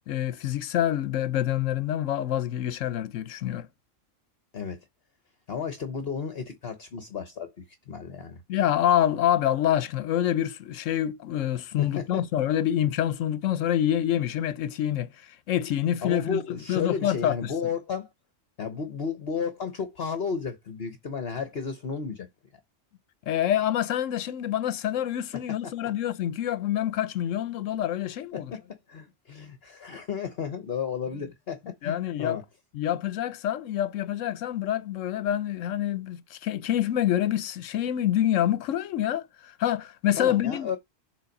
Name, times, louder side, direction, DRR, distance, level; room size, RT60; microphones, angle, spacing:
voice 1, 0.1-3.7 8.5-15.1 15.5-17.5 23.3-28.5 31.8-32.4 32.7-40.7, left 11 dB, 80° left, 1.0 m, -26 dB
voice 2, 5.5-7.5 7.9-8.4 11.8-12.2 16.0-18.1 18.6-22.3 25.3-25.7 28.3-32.4 40.2-40.8, left 6 dB, 55° left, 1.2 m, -33 dB
7.2 x 3.8 x 5.2 m
omnidirectional pair, 1.3 m